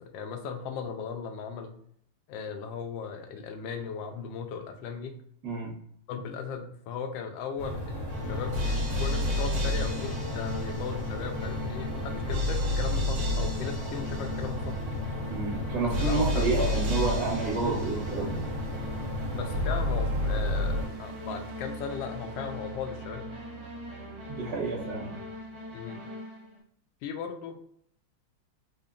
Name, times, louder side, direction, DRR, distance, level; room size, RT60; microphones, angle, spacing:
voice 1, 0.0-1.7 2.3-5.1 6.1-14.8 15.8-16.6 17.6-17.8 19.3-23.3 25.7-26.0 27.0-27.6, left 6 dB, 75° left, 5 dB, 1.2 m, -37 dB
voice 2, 5.4-5.8 15.3-18.4 24.3-25.1, right 3 dB, 55° right, -5 dB, 1.4 m, -30 dB
sound 1, 7.6-20.8, equal, 25° left, 0.8 m, -35 dB
sound 2, 8.1-26.6, left 1 dB, 35° right, 1.4 m, -33 dB
sound 3, 16.0-25.9, right 5 dB, 70° right, 1.1 m, -47 dB
3.8 x 2.1 x 3.6 m, 0.65 s
omnidirectional pair, 2.2 m